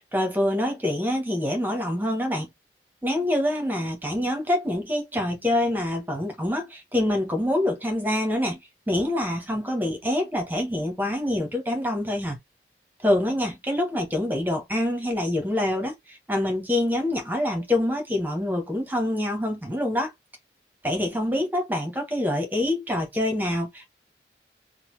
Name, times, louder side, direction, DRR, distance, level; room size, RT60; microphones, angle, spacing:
voice 1, 0.0-2.5 3.0-8.6 8.9-12.4 13.0-20.1 20.8-23.9, left 1 dB, 10° right, 1.0 m, -26 dB
3.8 x 2.2 x 3.1 m
head